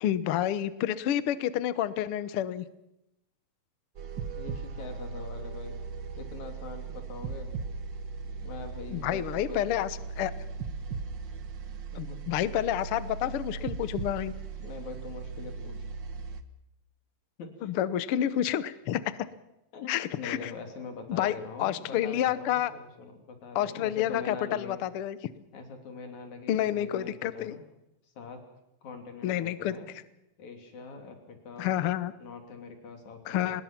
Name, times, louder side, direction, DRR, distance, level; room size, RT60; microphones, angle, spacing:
voice 1, 0.0-2.6 8.9-9.9 10.2-10.3 11.9-14.3 17.6-19.0 19.9-20.5 21.1-22.7 23.5-25.2 26.5-27.5 29.2-29.8 31.6-32.1 33.3-33.6, left 11 dB, 75° left, 14 dB, 1.3 m, -29 dB
sound 1, 4.0-16.4, right 5 dB, 75° right, 1.0 m, -38 dB
voice 2, 4.4-5.8 6.2-7.6 8.4-9.6 11.9-12.2 14.6-15.8 17.4-17.7 19.7-24.8 25.5-27.6 28.2-28.4 28.8-30.0 30.4-31.8 32.2-33.6, left 4 dB, 60° left, 4 dB, 4.1 m, -43 dB
25.5 x 20.5 x 6.0 m, 0.87 s
omnidirectional pair, 3.9 m